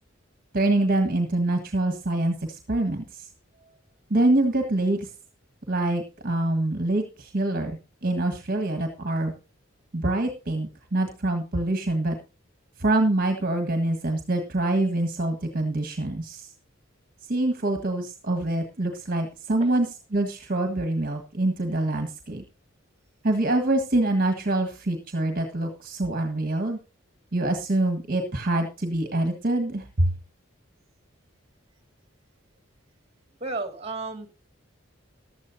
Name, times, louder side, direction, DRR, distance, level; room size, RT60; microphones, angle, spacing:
voice 1, 0.5-3.3 4.1-5.1 5.7-9.3 9.9-12.2 12.8-16.5 17.3-19.9 20.1-22.4 23.2-26.8 27.3-30.1, right 2 dB, 45° right, 5 dB, 1.6 m, -25 dB
voice 2, 33.4-34.3, right 3 dB, 30° right, 6 dB, 2.1 m, -33 dB
15.0 x 12.0 x 2.7 m, 0.31 s
head